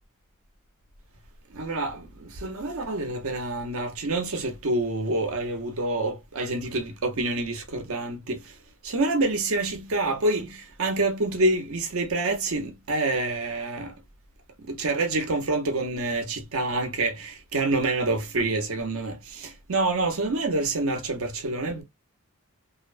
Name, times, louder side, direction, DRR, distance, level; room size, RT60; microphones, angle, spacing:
voice 1, 1.5-8.4 8.8-13.9 14.7-21.8, right 2 dB, 70° right, 0.8 m, -27 dB
2.7 x 2.1 x 2.4 m
head